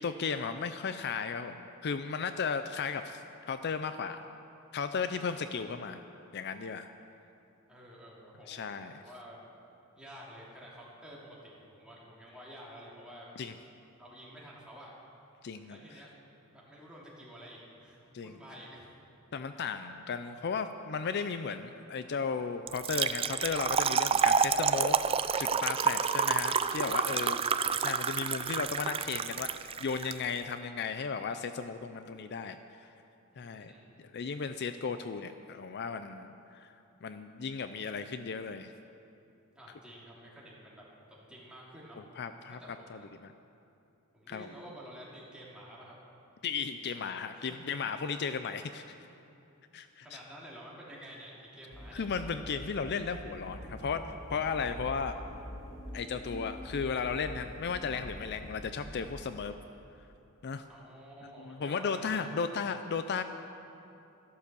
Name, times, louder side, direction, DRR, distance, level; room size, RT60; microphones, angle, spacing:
voice 1, 0.0-4.2 4.7-6.0 6.3-6.9 8.5-8.9 13.4-13.5 15.4-15.8 18.1-18.4 19.3-25.0 25.4-27.4 27.6-32.9 33.4-33.7 34.1-36.7 37.0-38.7 42.2-42.6 42.9-43.3 44.3-44.5 46.4-48.9 49.7-50.2 51.9-55.2 55.9-59.5 60.4-60.6 61.4-63.2, left 5 dB, 50° left, 9 dB, 0.5 m, -35 dB
voice 2, 7.7-9.4 9.9-13.3 14.0-14.9 15.7-16.1 16.5-18.9 26.9-27.6 33.3-34.0 39.5-42.0 42.5-43.1 44.1-45.9 47.3-48.1 50.0-52.0 60.7-62.6, equal, 5° right, -6 dB, 2.9 m, -50 dB
Trickle dribble / Fill (with liquid), 22.7-30.1, right 6 dB, 25° right, 0.3 m, -29 dB
sound 1, 51.7-59.2, equal, 15° left, 2.2 m, -45 dB
13.5 x 12.0 x 6.8 m, 2.9 s
head